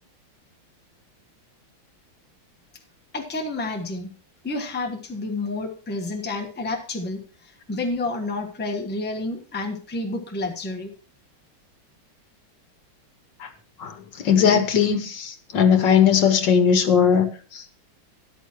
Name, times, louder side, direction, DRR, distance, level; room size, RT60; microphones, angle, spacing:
voice 1, 3.1-4.1 4.4-10.9, left 2 dB, 5° left, 1.0 m, -30 dB
voice 2, 13.8-17.8, left 7 dB, 65° left, 1.6 m, -19 dB
13.5 x 11.0 x 3.0 m
omnidirectional pair, 2.3 m